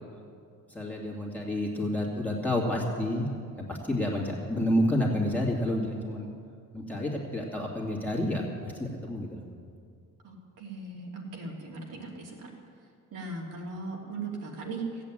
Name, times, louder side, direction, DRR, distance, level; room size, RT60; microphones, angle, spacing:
voice 1, 0.7-3.3 3.6-6.3 6.7-9.4, left 1 dB, 5° left, -3 dB, 2.6 m, -29 dB
voice 2, 10.2-12.6 13.1-15.0, right 3 dB, 65° right, -2 dB, 3.0 m, -38 dB
14.5 x 8.5 x 8.9 m, 2.3 s
cardioid pair, 110°, 34 cm